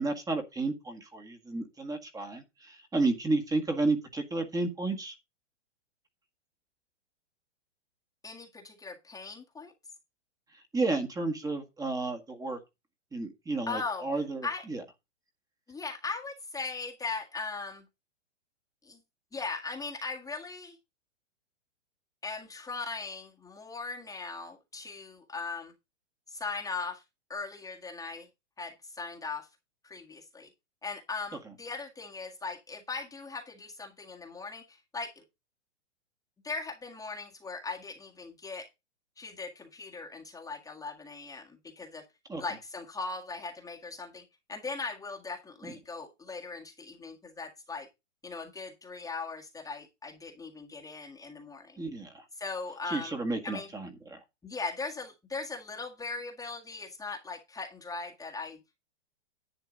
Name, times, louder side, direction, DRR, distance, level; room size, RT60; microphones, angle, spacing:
voice 1, 0.0-5.1 10.5-12.6 13.1-14.8 31.5-31.6 42.3-42.4 45.6-45.7 51.8-52.3 52.9-54.2, right 3 dB, 10° right, 1.8 m, -32 dB
voice 2, 8.2-9.7 13.7-14.1 14.4-14.6 15.7-17.8 18.8-19.0 19.3-20.8 22.2-25.7 26.3-27.0 27.3-28.3 28.6-29.5 29.8-30.5 30.8-35.2 36.4-38.7 39.2-42.1 42.4-47.9 48.2-51.8 52.4-53.1 53.4-53.7 54.4-58.6, left 4 dB, 10° left, 1.7 m, -39 dB
11.0 x 8.2 x 3.9 m
hypercardioid pair, 130°, 36 cm